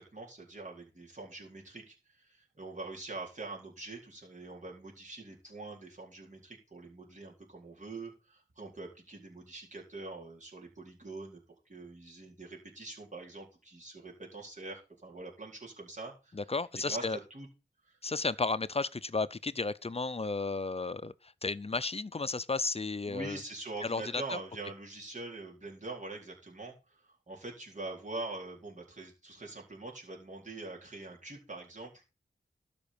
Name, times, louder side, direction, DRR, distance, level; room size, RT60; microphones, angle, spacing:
voice 1, 0.0-16.4 16.8-17.5 17.8-18.0 23.1-32.0, right 2 dB, 40° right, 4.1 m, -44 dB
voice 2, 16.3-17.2 18.0-23.4 23.8-24.4, left 3 dB, 35° left, 0.6 m, -33 dB
12.5 x 5.2 x 6.9 m
wide cardioid pair, 65°, 18 cm